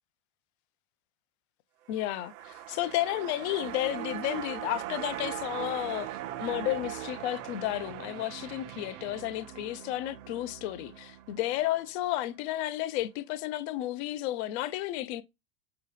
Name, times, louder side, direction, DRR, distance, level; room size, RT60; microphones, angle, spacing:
voice 1, 1.9-15.2, left 14 dB, 50° left, 0.4 m, -32 dB
sound 1, 1.9-12.3 12.6-12.7, right 13 dB, 60° right, 0.5 m, -40 dB
3.6 x 2.9 x 3.2 m
supercardioid pair, 145°, 46 cm